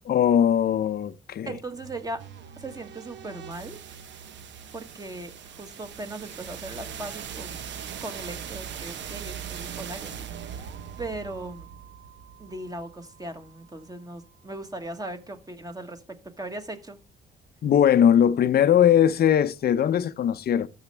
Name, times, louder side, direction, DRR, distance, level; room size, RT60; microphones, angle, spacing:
voice 1, 0.0-1.5 17.6-20.7, left 9 dB, 50° left, 0.6 m, -20 dB
voice 2, 1.4-2.3 2.6-3.8 4.7-7.6 8.0-10.7 11.0-11.7 12.4-17.0, right 2 dB, 20° right, 1.4 m, -38 dB
sound 1, 1.8-13.6, right 8 dB, 65° right, 0.9 m, -40 dB
12.0 x 6.6 x 3.4 m
cardioid pair, 90°, 20 cm